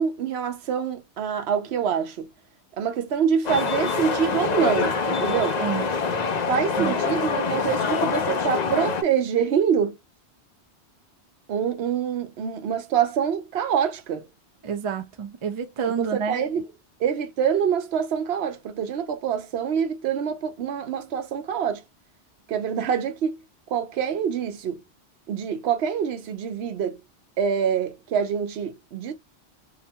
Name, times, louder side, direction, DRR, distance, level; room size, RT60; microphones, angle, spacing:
voice 1, 0.0-2.3 2.8-5.6 6.5-10.0 11.5-14.3 16.0-16.7 17.0-21.8 22.5-23.4 23.7-24.8 25.3-27.0 27.4-29.1, right 7 dB, 75° right, 0.9 m, -25 dB
sound 1, 3.4-9.0, left 4 dB, 50° left, 0.6 m, -25 dB
voice 2, 14.6-16.4, right 6 dB, 45° right, 0.4 m, -29 dB
2.8 x 2.2 x 2.7 m
omnidirectional pair, 1.1 m